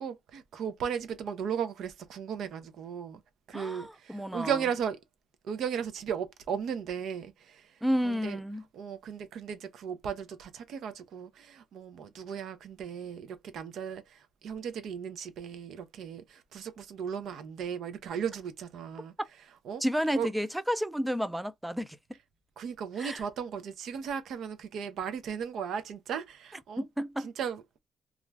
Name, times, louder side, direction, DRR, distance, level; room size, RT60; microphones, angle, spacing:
voice 1, 0.0-3.2 3.5-5.0 5.4-7.7 8.0-8.4 8.7-19.1 19.7-19.8 20.2-20.3 22.6-26.8 27.2-27.8, right 7 dB, 75° right, 0.5 m, -36 dB
voice 2, 3.5-4.6 7.8-8.6 19.8-22.0 23.0-23.2 26.8-27.3, equal, 5° right, 0.3 m, -31 dB
2.4 x 2.2 x 3.2 m
cardioid pair, 90°, 0 cm